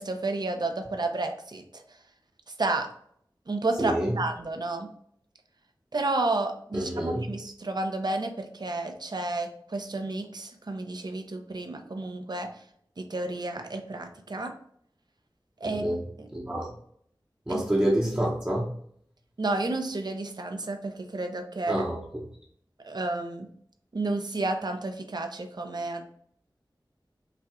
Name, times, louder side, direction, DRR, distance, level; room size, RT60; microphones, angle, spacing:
voice 1, 0.0-1.8 2.6-2.9 3.5-4.9 5.9-12.5 13.0-14.5 15.6-16.3 17.5-17.6 19.4-21.8 22.8-23.5 23.9-26.0, right 2 dB, 55° right, 0.6 m, -31 dB
voice 2, 3.8-4.1 6.7-7.3 15.7-16.0 16.3-16.7 17.5-18.7 21.7-22.0, right 1 dB, 20° right, 0.8 m, -27 dB
5.6 x 2.4 x 3.5 m
wide cardioid pair, 60°, 8 cm